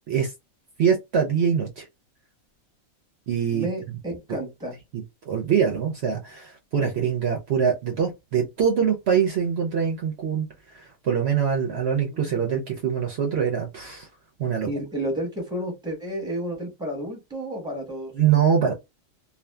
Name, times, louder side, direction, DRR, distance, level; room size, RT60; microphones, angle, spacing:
voice 1, 0.8-1.9 3.3-3.7 4.3-4.4 4.9-14.1 14.4-14.7 18.1-18.7, right 7 dB, 60° right, 0.8 m, -24 dB
voice 2, 3.5-4.8 12.0-12.4 14.6-18.1, right 1 dB, 5° right, 1.0 m, -31 dB
2.6 x 2.4 x 2.2 m
omnidirectional pair, 1.4 m